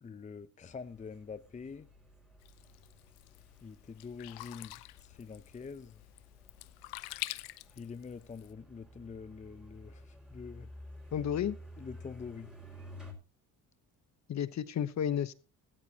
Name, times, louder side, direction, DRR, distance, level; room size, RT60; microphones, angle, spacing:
voice 1, 0.0-1.9 3.6-6.0 7.7-10.7 11.8-12.5, left 5 dB, 20° left, 0.7 m, -46 dB
sound 1, 0.6-13.1, left 1 dB, ahead, 5.1 m, -53 dB
Sink (filling or washing), 2.4-8.5, left 20 dB, 80° left, 0.8 m, -46 dB
voice 2, 11.1-11.6 14.3-15.3, left 9 dB, 45° left, 1.1 m, -32 dB
16.5 x 14.5 x 2.9 m
supercardioid pair, 90°, 38 cm